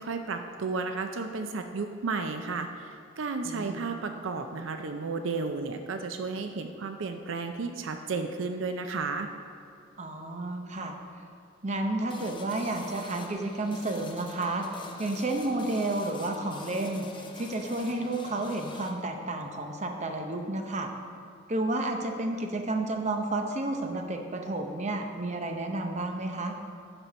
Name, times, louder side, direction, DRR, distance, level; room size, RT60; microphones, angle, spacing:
voice 1, 0.0-9.3, right 4 dB, 70° right, 6 dB, 0.5 m, -33 dB
voice 2, 3.4-3.9 10.0-11.0 11.6-14.7 15.0-17.1 17.3-20.9 21.5-26.6, right 2 dB, 35° right, 4 dB, 0.7 m, -31 dB
sound 1, 12.1-18.9, left 3 dB, 25° left, 0.7 m, -45 dB
12.0 x 4.4 x 5.5 m, 2.4 s
head